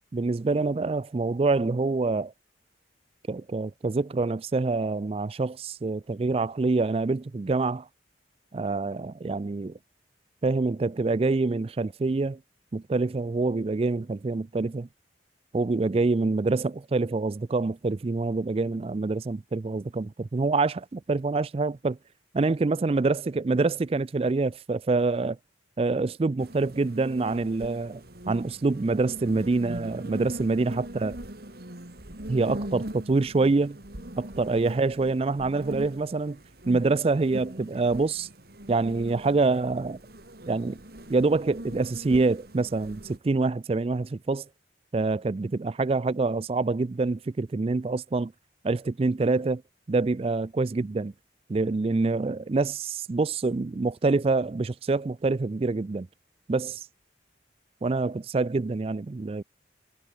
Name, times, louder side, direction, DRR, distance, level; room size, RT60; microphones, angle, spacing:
voice 1, 0.1-2.3 3.3-7.9 8.5-9.7 10.4-12.4 12.7-14.9 15.5-22.0 22.3-25.4 25.8-31.2 32.3-33.8 34.2-36.4 36.7-38.3 38.7-40.0 40.5-40.8 41.1-44.4 44.9-48.3 48.6-49.6 49.9-51.1 51.5-56.1 56.5-56.9 57.8-59.4, right 3 dB, 30° right, 0.4 m, -26 dB
sound 1, 26.4-43.2, right 1 dB, 55° right, 3.3 m, -41 dB
head